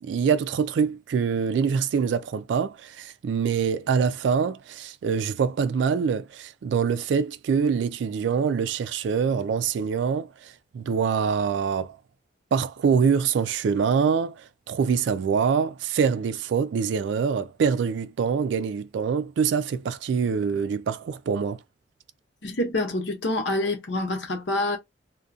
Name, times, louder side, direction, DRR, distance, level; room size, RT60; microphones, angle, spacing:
voice 1, 0.0-12.0 12.5-21.6, right 6 dB, 80° right, 0.3 m, -25 dB
voice 2, 22.4-24.8, left 2 dB, 80° left, 0.9 m, -26 dB
2.3 x 2.2 x 2.6 m
head